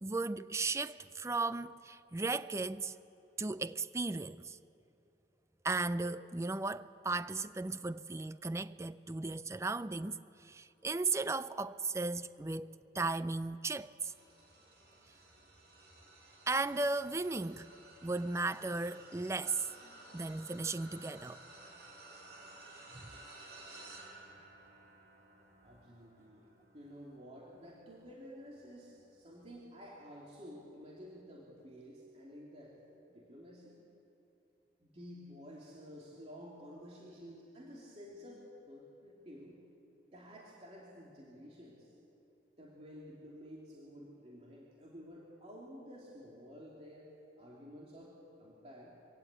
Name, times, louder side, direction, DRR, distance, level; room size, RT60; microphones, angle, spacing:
voice 1, 0.0-3.0 3.4-4.6 5.6-14.1 16.5-17.7 18.0-19.7 20.1-21.4 22.9-23.1, right 3 dB, 15° right, 0.4 m, -36 dB
sound 1, 14.0-29.5 30.0-30.3 31.5-31.6, right 2 dB, 70° right, 5.4 m, -56 dB
voice 2, 25.6-26.5 26.7-32.7 33.1-33.8 34.8-39.6 40.1-41.9 42.6-47.1 47.4-49.0, equal, 35° right, 2.9 m, -52 dB
23.5 x 17.0 x 8.3 m
head